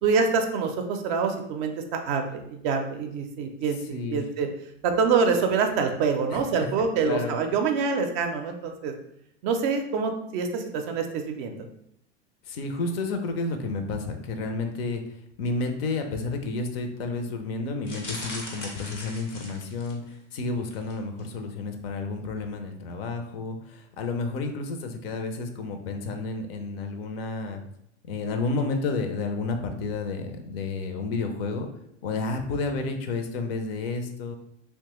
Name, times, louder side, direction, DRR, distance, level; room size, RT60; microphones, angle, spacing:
voice 1, 0.0-4.5 4.8-8.9 9.4-11.6, right 5 dB, 40° right, 5 dB, 0.5 m, -26 dB
voice 2, 3.9-4.2 6.3-6.7 7.0-7.4 12.5-15.0 15.4-27.6 28.1-31.7 32.0-34.4, left 3 dB, 55° left, 6 dB, 0.5 m, -31 dB
sound 1, 17.8-20.1 20.7-20.9 21.2-21.3, left 2 dB, 85° left, 0.8 m, -39 dB
2.9 x 2.2 x 2.9 m, 0.74 s
figure-of-eight pair, 85°, 36 cm